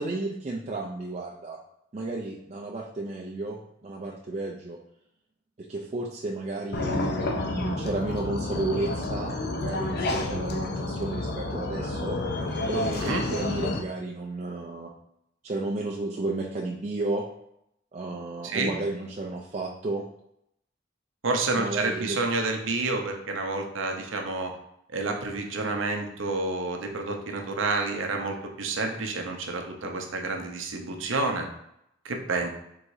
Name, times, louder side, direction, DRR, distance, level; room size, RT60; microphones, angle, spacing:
voice 1, 0.0-1.6 1.9-4.8 5.6-12.2 12.7-14.9 15.4-17.2 17.9-20.0 21.6-22.2, right 2 dB, 35° right, -2 dB, 0.4 m, -32 dB
sound 1, 6.7-13.8, left 2 dB, 55° left, 0.6 m, -30 dB
voice 2, 21.2-24.5 24.9-31.5 32.0-32.5, right 3 dB, 80° right, 3 dB, 0.7 m, -29 dB
4.7 x 3.7 x 2.6 m, 0.78 s
head